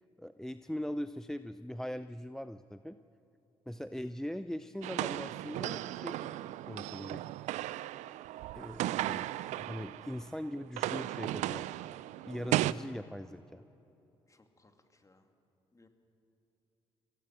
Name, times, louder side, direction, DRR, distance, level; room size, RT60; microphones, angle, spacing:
voice 1, 0.2-3.0 3.7-7.2 8.5-11.6 12.3-13.6, equal, 5° left, 12 dB, 0.6 m, -41 dB
sound 1, 4.8-10.3 10.6-12.7, right 15 dB, 70° right, 0.4 m, -36 dB
voice 2, 14.3-15.3 15.7-15.9, left 3 dB, 25° left, 5 dB, 2.4 m, -65 dB
23.5 x 17.5 x 6.5 m, 3.0 s
hypercardioid pair, 50°, 12 cm